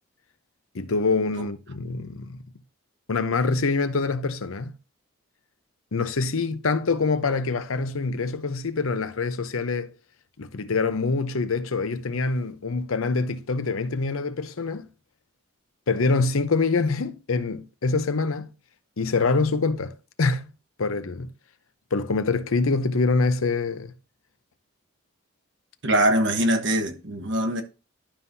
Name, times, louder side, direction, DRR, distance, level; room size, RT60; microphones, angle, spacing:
voice 1, 0.7-2.4 3.1-4.7 5.9-9.9 10.4-14.9 15.9-18.5 19.0-20.5 20.8-21.3 21.9-23.9, left 4 dB, 75° left, 0.7 m, -25 dB
voice 2, 25.8-27.6, right 1 dB, 55° right, 1.2 m, -22 dB
11.5 x 5.6 x 2.7 m
head